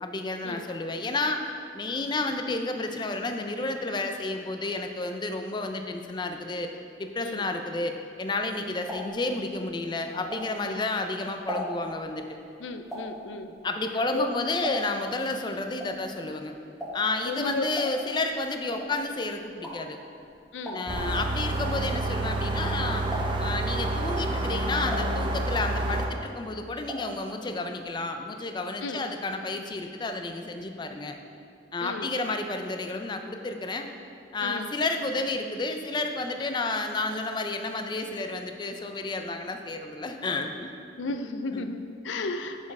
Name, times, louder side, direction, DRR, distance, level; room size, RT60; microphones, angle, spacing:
voice 1, 0.0-6.7 7.0-12.4 13.6-16.5 16.9-20.0 20.7-23.1 23.4-31.2 31.7-33.9 34.3-40.7 41.5-41.7, left 2 dB, 25° left, 6 dB, 0.4 m, -31 dB
sound 1, 8.7-10.9 11.2-15.2 15.4-22.7 23.0-23.6 24.1-25.8 26.1-27.2 27.4-27.5 27.8-27.9, equal, ahead, 1.2 m, -39 dB
voice 2, 12.6-13.5 14.1-14.3 17.3-17.7 20.5-20.8 28.8-29.0 31.8-32.1 34.4-34.7 41.0-42.7, left 3 dB, 85° left, 8 dB, 0.4 m, -34 dB
sound 2, 20.9-26.1, right 2 dB, 25° right, 0.6 m, -28 dB
7.2 x 4.4 x 4.7 m, 2.5 s
head